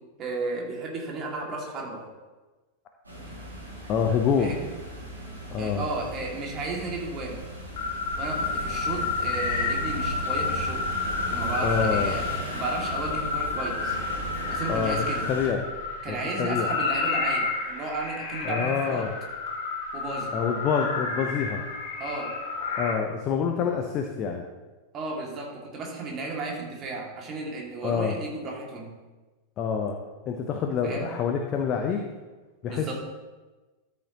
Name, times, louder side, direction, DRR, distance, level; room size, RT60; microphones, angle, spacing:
voice 1, 0.2-2.0 4.4-4.7 5.6-7.4 8.2-10.8 11.3-12.2 12.5-14.0 14.5-15.3 16.0-19.1 19.9-20.3 22.0-22.3 24.9-28.9 30.8-31.1 32.7-32.9, right 3 dB, 30° right, -1 dB, 2.4 m, -34 dB
sound 1, 3.0-15.5, right 1 dB, 75° right, 3.0 m, -37 dB
voice 2, 3.9-4.6 5.5-5.9 11.6-12.2 14.7-15.6 16.1-16.8 18.4-19.1 20.3-21.6 22.8-24.5 27.8-28.1 29.6-29.9 30.3-32.1 32.6-32.9, left 6 dB, 35° left, 3 dB, 0.9 m, -27 dB
sound 2, 7.8-22.9, left 4 dB, 55° left, 1.9 m, -30 dB
13.0 x 7.4 x 3.0 m, 1.2 s
figure-of-eight pair, 90°, 0 cm